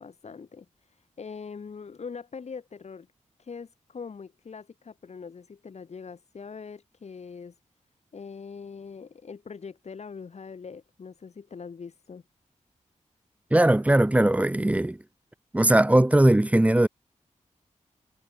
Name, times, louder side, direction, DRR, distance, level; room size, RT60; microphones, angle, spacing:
voice 1, 0.0-3.1 3.4-7.6 8.1-12.2, left 5 dB, 60° left, 7.9 m, -42 dB
voice 2, 13.5-15.0 15.5-16.9, right 1 dB, 10° right, 1.1 m, -19 dB
wide cardioid pair, 140°, 13 cm